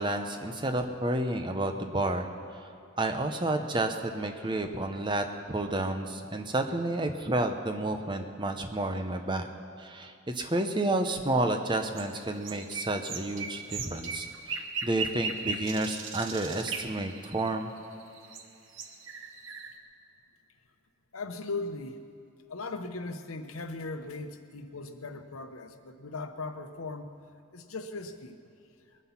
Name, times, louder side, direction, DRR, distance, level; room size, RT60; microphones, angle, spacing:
voice 1, 0.0-2.3 2.5-2.7 3.0-9.5 9.8-17.7, right 2 dB, 20° right, 6 dB, 0.7 m, -30 dB
sound 1, 11.8-18.4 18.7-19.8, right 4 dB, 70° right, 1.1 m, -38 dB
voice 2, 21.1-22.0 22.5-27.1 27.5-28.4, left 3 dB, 85° left, 8 dB, 0.9 m, -38 dB
21.5 x 9.7 x 5.8 m, 2.7 s
head